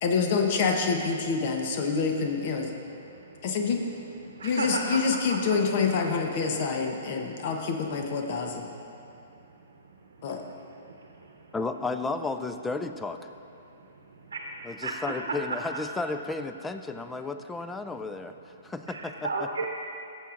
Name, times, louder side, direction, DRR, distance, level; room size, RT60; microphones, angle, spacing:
voice 1, 0.0-2.7 3.4-3.8 4.4-8.6 10.2-10.4, left 5 dB, 50° left, 3 dB, 0.8 m, -27 dB
voice 2, 4.4-4.8 5.3-5.4 14.3-14.4 14.8-14.9 18.9-19.7, right 4 dB, 85° right, 1 dB, 0.8 m, -32 dB
voice 3, 11.5-13.2 14.6-18.3 18.6-19.3, left 3 dB, 10° left, 8 dB, 0.3 m, -33 dB
14.0 x 7.2 x 2.5 m, 2.7 s
hypercardioid pair, 135°, 0 cm